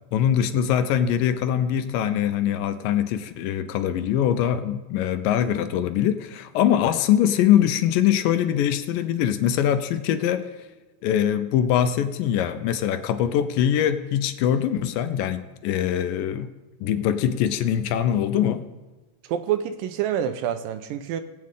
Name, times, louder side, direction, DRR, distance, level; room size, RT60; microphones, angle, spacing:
voice 1, 0.1-10.5 11.0-16.5 16.8-18.7, left 10 dB, 80° left, 10 dB, 2.2 m, -23 dB
voice 2, 19.3-21.2, right 10 dB, 80° right, 10 dB, 2.2 m, -27 dB
21.0 x 8.5 x 3.7 m, 1.2 s
omnidirectional pair, 4.2 m